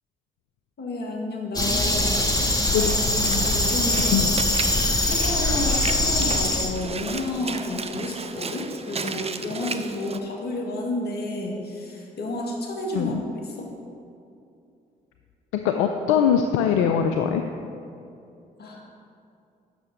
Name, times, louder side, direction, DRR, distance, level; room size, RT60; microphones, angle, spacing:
voice 1, 0.8-2.4 2.7-4.3 5.0-13.7 18.6-18.8, left 2 dB, 55° left, -1 dB, 2.0 m, -31 dB
sound 1, 1.5-6.7, left 1 dB, 20° left, 1.5 m, -22 dB
Walk footsteps / Splash splatter, 2.8-10.2, right 4 dB, 30° right, 0.6 m, -34 dB
voice 2, 15.5-17.4, left 8 dB, 80° left, 5 dB, 0.5 m, -22 dB
9.1 x 6.5 x 5.1 m, 2.6 s
hypercardioid pair, 45°, 20 cm